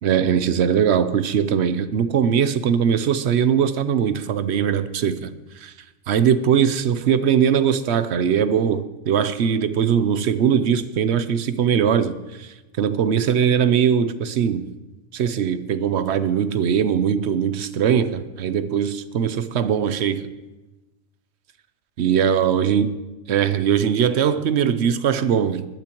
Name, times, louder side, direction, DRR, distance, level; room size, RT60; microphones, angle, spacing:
voice 1, 0.0-5.3 5.6-5.7 6.1-14.7 15.1-20.2 22.0-22.9 23.3-25.7, right 8 dB, 60° right, 12 dB, 0.9 m, -20 dB
20.0 x 12.0 x 3.0 m, 1.1 s
omnidirectional pair, 1.4 m